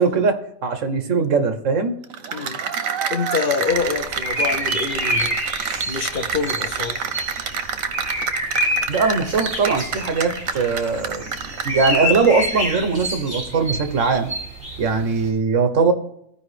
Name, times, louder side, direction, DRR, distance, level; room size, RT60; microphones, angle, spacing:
voice 1, 0.0-1.9 8.9-11.3 11.6-14.3 14.8-15.9, right 4 dB, 70° right, 8 dB, 1.3 m, -20 dB
Cheering / Applause, 2.0-12.4, right 6 dB, 85° right, 1.2 m, -28 dB
voice 2, 2.3-5.4 5.9-7.0, left 5 dB, 45° left, 5 dB, 0.8 m, -26 dB
sound 1, 3.7-15.3, equal, 40° right, 3.2 m, -28 dB
14.5 x 4.9 x 3.3 m, 0.76 s
omnidirectional pair, 1.4 m